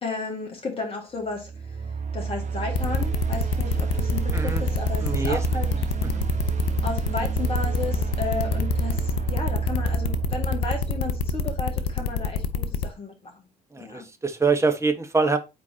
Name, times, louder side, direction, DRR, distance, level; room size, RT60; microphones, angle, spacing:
voice 1, 0.0-5.7 6.8-13.4 13.8-14.1, left 4 dB, 25° left, 1.8 m, -33 dB
sound 1, 1.3-12.4, right 5 dB, 35° right, 1.1 m, -29 dB
sound 2, 2.7-12.9, left 7 dB, 65° left, 0.7 m, -27 dB
voice 2, 4.3-4.6 5.0-5.4 6.1-6.2 13.7-15.4, right 4 dB, 15° right, 1.1 m, -24 dB
8.6 x 4.4 x 2.8 m
figure-of-eight pair, 50°, 21 cm